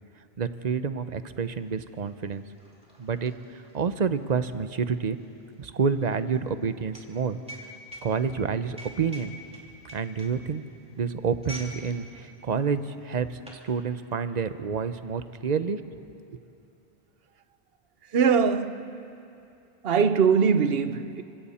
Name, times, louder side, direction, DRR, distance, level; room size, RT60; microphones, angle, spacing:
voice 1, 0.4-2.4 3.0-3.3 3.7-5.2 5.6-7.4 8.0-9.3 9.9-10.6 11.0-16.0, right 6 dB, 45° right, 0.9 m, -28 dB
sound 1, 1.5-1.6 1.8-11.8 12.1-12.4 13.0-13.7, equal, 5° right, 3.1 m, -46 dB
voice 2, 18.1-19.1 19.8-21.2, right 6 dB, 70° right, 1.0 m, -22 dB
29.5 x 25.5 x 4.3 m
omnidirectional pair, 1.0 m